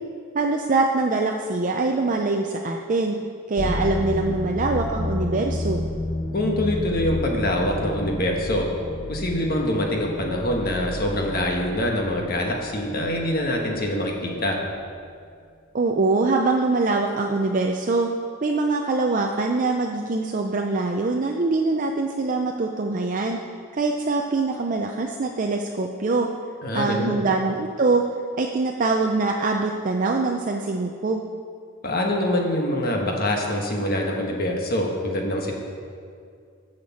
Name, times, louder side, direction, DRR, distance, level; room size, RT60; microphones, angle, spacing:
voice 1, 0.3-3.2 3.5-5.9 15.7-18.1 18.4-23.4 23.7-26.3 26.7-28.0 28.4-31.2, right 3 dB, 35° right, 2 dB, 0.5 m, -23 dB
sound 1, 3.6-13.9, left 2 dB, 20° left, 0.5 m, -31 dB
voice 2, 6.3-8.7 9.1-14.6 26.6-27.2 31.8-35.5, left 1 dB, 45° left, 0 dB, 1.3 m, -25 dB
9.2 x 6.6 x 7.1 m, 2.2 s
head